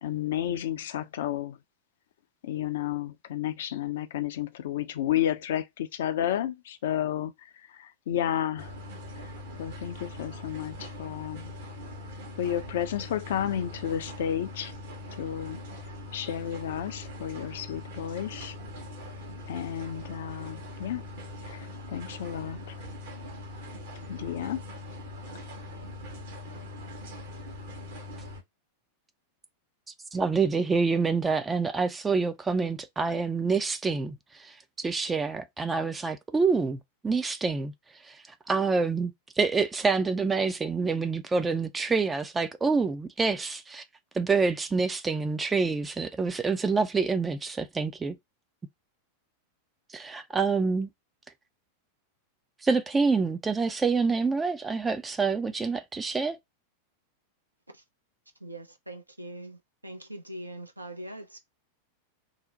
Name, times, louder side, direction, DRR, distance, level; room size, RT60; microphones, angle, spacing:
voice 1, 0.0-1.6 2.4-8.7 9.2-9.3 9.6-11.6 12.4-14.7 15.2-15.6 16.1-18.6 19.5-21.0 21.4-22.8 24.1-24.6, left 10 dB, 60° left, 0.4 m, -32 dB
sound 1, 8.6-28.4, left 2 dB, 55° right, 1.0 m, -42 dB
voice 2, 30.1-37.7 38.0-43.8 44.1-48.2 49.9-50.9 52.6-56.4, right 4 dB, 15° right, 0.3 m, -27 dB
voice 3, 58.4-61.4, right 1 dB, 85° right, 0.6 m, -42 dB
2.7 x 2.0 x 3.8 m
figure-of-eight pair, 90°, 0 cm